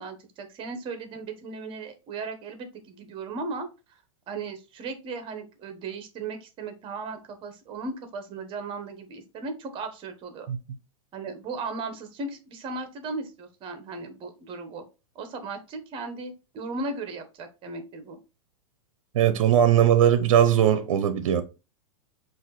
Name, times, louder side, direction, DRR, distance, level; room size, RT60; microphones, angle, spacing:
voice 1, 0.0-4.0 4.3-10.5 11.1-14.8 15.1-18.2, right 3 dB, 30° right, 1.0 m, -36 dB
voice 2, 19.1-21.4, right 10 dB, 75° right, 0.7 m, -19 dB
5.6 x 2.6 x 3.1 m
hypercardioid pair, 135°, 17 cm